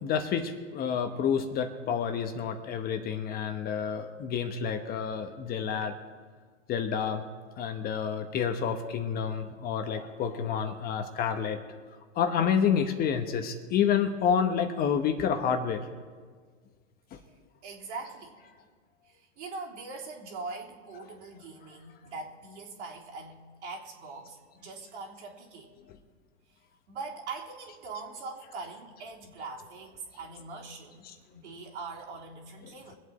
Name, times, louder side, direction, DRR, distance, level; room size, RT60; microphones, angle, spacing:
voice 1, 0.0-5.9 6.7-7.2 7.6-11.6 12.2-15.8 31.0-31.1, left 7 dB, 25° left, 6 dB, 1.0 m, -29 dB
voice 2, 17.6-18.3 19.0-25.7 26.9-33.0, right 4 dB, 65° right, -2 dB, 3.5 m, -42 dB
24.0 x 8.1 x 4.3 m, 1.5 s
hypercardioid pair, 130°, 36 cm